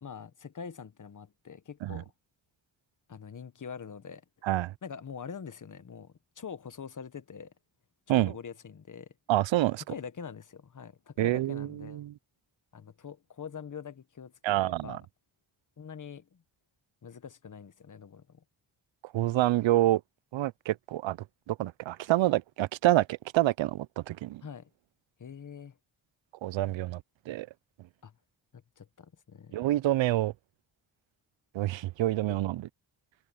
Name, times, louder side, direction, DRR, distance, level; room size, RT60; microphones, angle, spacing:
voice 1, 0.0-2.1 3.1-4.2 4.8-7.5 8.1-9.1 9.9-12.0 12.7-15.0 15.8-16.4 17.0-18.4 24.4-24.7 25.2-25.8 28.0-28.1 28.5-29.6 32.3-32.4, left 6 dB, 40° left, 1.3 m, -44 dB
voice 2, 9.3-9.8 11.2-12.1 14.4-15.0 19.1-20.0 20.3-21.2 21.5-24.4 26.4-27.0 27.3-27.5 29.5-30.3 31.5-32.7, right 15 dB, 70° right, 0.6 m, -27 dB
cardioid pair, 100°, 47 cm